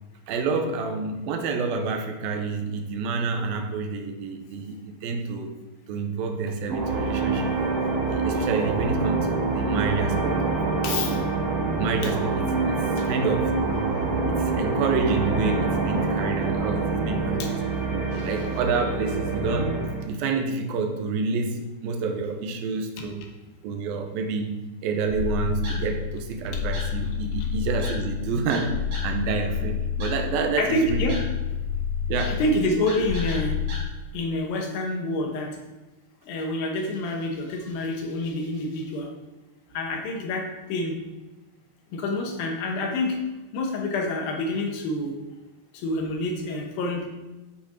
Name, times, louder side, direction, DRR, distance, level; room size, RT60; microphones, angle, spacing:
voice 1, 0.3-5.6 5.9-7.8 8.1-10.6 10.9-11.0 11.7-13.9 14.3-17.4 17.9-23.2 23.6-31.1 32.1-32.4, right 4 dB, 80° right, 5 dB, 2.5 m, -28 dB
sound 1, 6.7-20.0, right 3 dB, 35° right, 1.8 m, -26 dB
voice 2, 10.8-11.2 12.0-12.1 17.4-17.5 26.5-26.6 30.6-31.2 32.3-33.6 34.1-35.6 36.2-39.1 39.7-40.9 41.9-43.2 43.5-45.2 45.7-47.1, left 1 dB, 75° left, 1 dB, 2.8 m, -27 dB
sound 2, 25.1-33.8, left 7 dB, 50° right, 3.6 m, -29 dB
8.3 x 6.0 x 5.0 m, 1.1 s
omnidirectional pair, 4.3 m